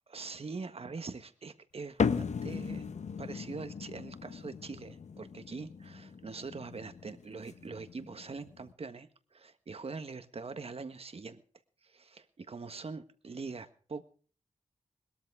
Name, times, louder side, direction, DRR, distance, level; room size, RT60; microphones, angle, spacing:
voice 1, 0.1-2.9 3.2-11.4 11.8-14.0, right 4 dB, 55° right, 10 dB, 1.6 m, -43 dB
sound 1, 2.0-8.7, left 5 dB, 75° left, 1.0 m, -37 dB
21.0 x 13.0 x 3.6 m, 0.40 s
wide cardioid pair, 85°, 12 cm